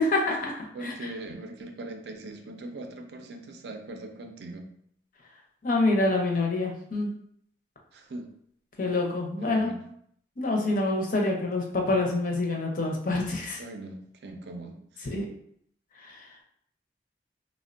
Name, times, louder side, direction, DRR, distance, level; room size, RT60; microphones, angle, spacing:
voice 1, 0.0-1.1 5.6-7.1 8.8-9.7 10.4-13.6 15.0-15.3 16.0-16.4, left 2 dB, 50° left, 0 dB, 0.6 m, -27 dB
voice 2, 0.7-4.7 7.9-8.3 9.4-9.8 13.6-15.1, right 2 dB, 70° right, 4 dB, 0.4 m, -40 dB
3.4 x 2.1 x 2.5 m, 0.68 s
head